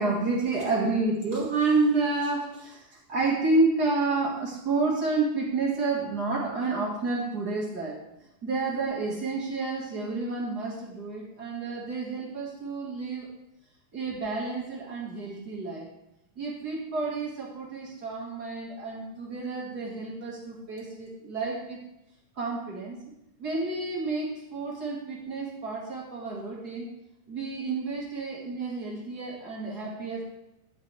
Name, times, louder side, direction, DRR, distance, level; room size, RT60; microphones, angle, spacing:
voice 1, 0.0-2.8 3.1-8.0 8.4-13.3 13.9-15.9 16.4-21.8 22.4-23.0 23.4-26.9 27.3-30.2, right 3 dB, 35° right, -3 dB, 2.2 m, -29 dB
11.5 x 8.1 x 3.5 m, 0.88 s
omnidirectional pair, 3.7 m